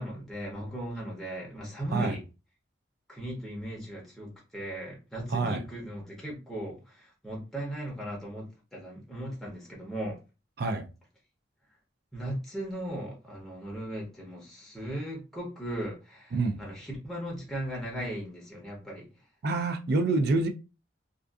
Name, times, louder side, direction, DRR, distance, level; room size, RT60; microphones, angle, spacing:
voice 1, 0.0-2.2 3.1-10.2 12.1-19.1, right 1 dB, ahead, 0.7 m, -37 dB
voice 2, 5.3-5.6 10.6-10.9 16.3-16.6 19.4-20.5, right 3 dB, 55° right, 0.4 m, -27 dB
2.5 x 2.3 x 2.3 m
head